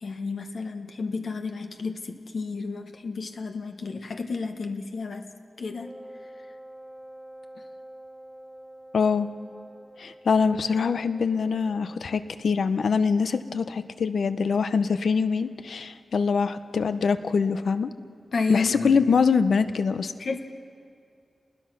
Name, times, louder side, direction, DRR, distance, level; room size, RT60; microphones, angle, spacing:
voice 1, 0.0-5.3 5.6-5.9 18.3-19.0 20.2-20.4, left 4 dB, 60° left, 5 dB, 1.1 m, -31 dB
Wind instrument woodwind instrument, 5.8-12.4, right 1 dB, ahead, 1.0 m, -47 dB
voice 2, 8.9-9.3 10.0-17.9 18.5-20.1, left 5 dB, 80° left, 11 dB, 0.7 m, -24 dB
30.0 x 20.5 x 6.0 m, 2.4 s
wide cardioid pair, 165°, 0 cm